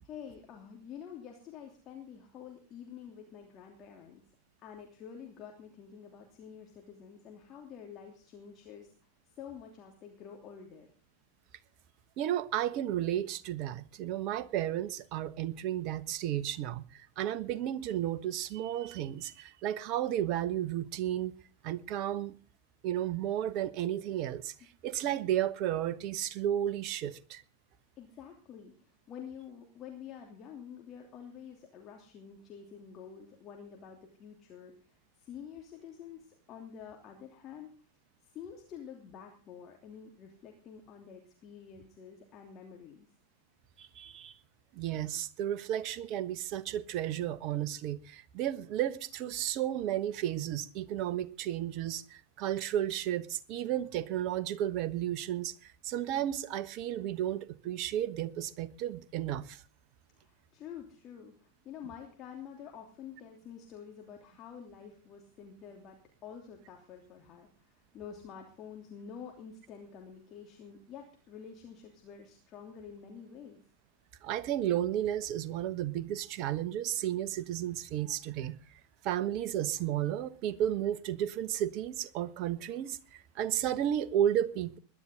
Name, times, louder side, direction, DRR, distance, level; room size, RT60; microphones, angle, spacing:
voice 1, 0.0-4.2 4.6-8.9 9.4-10.9 28.0-34.7 35.2-37.7 38.3-43.1 60.2-73.6, left 7 dB, 30° left, 2.9 m, -48 dB
voice 2, 12.2-21.3 21.6-22.4 22.8-24.5 24.8-27.4 43.8-44.3 44.7-59.6 74.2-78.5 79.0-84.8, right 11 dB, 40° right, 1.2 m, -33 dB
21.0 x 11.5 x 3.8 m
figure-of-eight pair, 90°, 0 cm